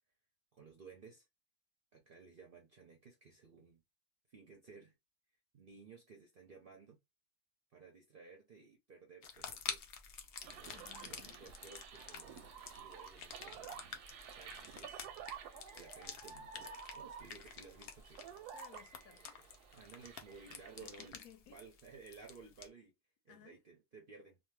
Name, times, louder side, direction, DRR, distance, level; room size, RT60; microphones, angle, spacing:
voice 1, 0.5-1.3 1.9-3.8 4.3-4.9 5.5-7.0 7.7-10.0 11.0-13.9 14.3-15.0 15.7-18.2 19.7-21.2 21.5-22.9 23.2-24.4, right 5 dB, 55° right, 0.6 m, -57 dB
sound 1, 9.2-22.6, left 7 dB, 90° left, 0.5 m, -50 dB
sound 2, 9.3-18.2, left 2 dB, 30° left, 0.9 m, -66 dB
sound 3, 10.4-21.1, right 7 dB, 85° right, 1.1 m, -52 dB
voice 2, 10.7-11.4 18.5-19.4 20.8-21.6 23.3-23.6, left 10 dB, 70° left, 0.9 m, -60 dB
2.7 x 2.1 x 3.1 m
omnidirectional pair, 1.6 m